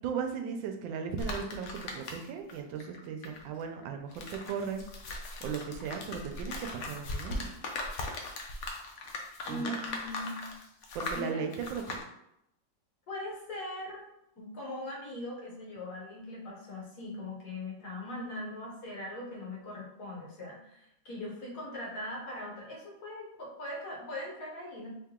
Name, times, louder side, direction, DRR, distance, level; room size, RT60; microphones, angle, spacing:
voice 1, 0.0-4.8 5.4-7.5 9.5-9.8 10.9-12.0, right 6 dB, 85° right, 5 dB, 1.3 m, -37 dB
sound 1, 1.2-2.5 2.8-12.0, left 2 dB, 80° left, 0.6 m, -39 dB
voice 2, 9.4-10.4 11.1-11.4 13.1-14.1 14.4-24.9, left 1 dB, 60° left, -4 dB, 1.6 m, -40 dB
3.3 x 2.8 x 3.6 m, 0.81 s
omnidirectional pair, 2.0 m